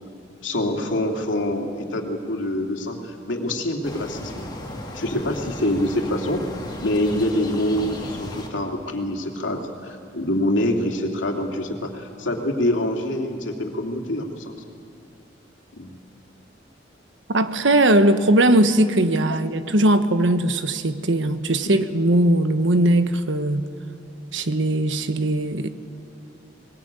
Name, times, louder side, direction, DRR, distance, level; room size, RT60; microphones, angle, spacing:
voice 1, 0.4-4.5 4.9-6.4 6.8-14.5 15.7-16.0, left 1 dB, 85° left, 2 dB, 2.8 m, -25 dB
sound 1, 3.8-8.5, left 1 dB, 25° left, 2.9 m, -35 dB
voice 2, 17.3-23.7 24.3-25.7, right 1 dB, 85° right, 10 dB, 1.2 m, -19 dB
21.0 x 20.5 x 9.0 m, 2.4 s
head